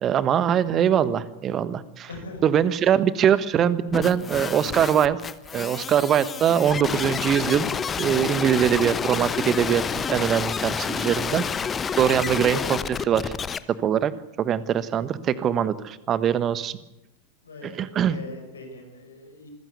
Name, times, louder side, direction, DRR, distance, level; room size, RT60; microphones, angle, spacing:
voice 1, 0.0-2.1 2.4-5.2 5.5-7.7 8.0-11.4 12.0-13.3 13.7-14.1 14.4-16.8 17.6-18.1, right 9 dB, 30° right, 16 dB, 1.4 m, -22 dB
voice 2, 2.1-2.4 17.4-19.5, left 2 dB, 70° left, 4 dB, 5.1 m, -41 dB
sound 1, 3.9-13.6, left 6 dB, 20° left, 1.0 m, -29 dB
26.5 x 15.5 x 8.3 m, 0.90 s
figure-of-eight pair, 90°, 0 cm